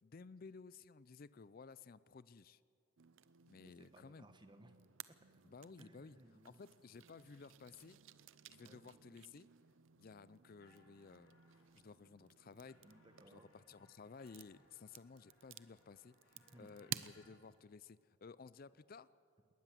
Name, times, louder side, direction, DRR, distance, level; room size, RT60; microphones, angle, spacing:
voice 1, 0.0-2.6 3.5-4.3 5.4-6.2 6.4-8.0 8.5-9.5 10.0-11.3 11.7-12.8 13.3-19.1, left 4 dB, 40° left, 17 dB, 0.4 m, -56 dB
sound 1, 3.0-17.6, right 10 dB, 65° right, 0.6 m, -55 dB
voice 2, 3.6-4.8 5.2-5.3 5.8-6.7 8.6-8.9 12.8-13.5 14.5-14.7 16.3-16.8, right 1 dB, 20° right, 8 dB, 1.2 m, -63 dB
sound 2, 10.6-12.0 12.4-17.3, left 2 dB, 90° left, 4.9 m, -72 dB
20.0 x 19.0 x 7.5 m, 2.4 s
head